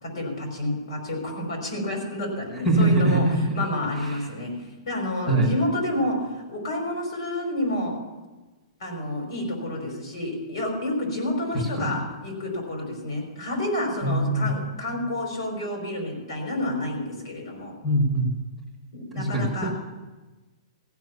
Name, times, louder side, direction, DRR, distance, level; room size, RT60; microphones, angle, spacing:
voice 1, 0.0-3.2 3.5-4.5 4.9-8.0 8.8-17.7 18.9-19.7, left 1 dB, 65° left, 1 dB, 5.3 m, -29 dB
voice 2, 2.5-3.6 3.9-4.3 5.3-5.5 11.5-12.0 14.0-14.5 17.8-18.3 19.1-19.7, right 1 dB, ahead, -4 dB, 1.3 m, -23 dB
15.5 x 6.0 x 9.5 m, 1.2 s
hypercardioid pair, 175°, 3 cm